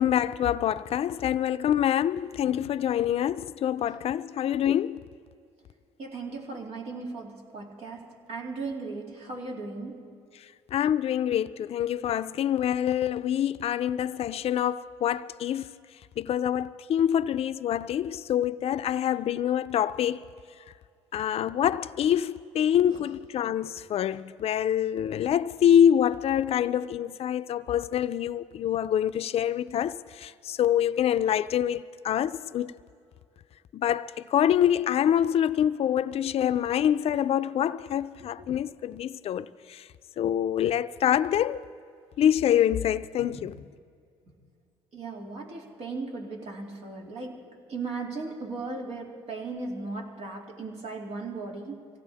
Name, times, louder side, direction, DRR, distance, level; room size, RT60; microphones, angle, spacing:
voice 1, 0.0-5.0 10.7-15.7 16.2-20.2 21.1-32.7 33.7-39.8 40.2-41.6 42.2-43.6, left 10 dB, 60° left, 0.5 m, -26 dB
voice 2, 6.0-10.1 22.9-23.0 38.4-38.5 43.2-43.5 44.9-51.9, right 3 dB, 65° right, 2.7 m, -37 dB
24.5 x 17.0 x 3.5 m
supercardioid pair, 75°, 12 cm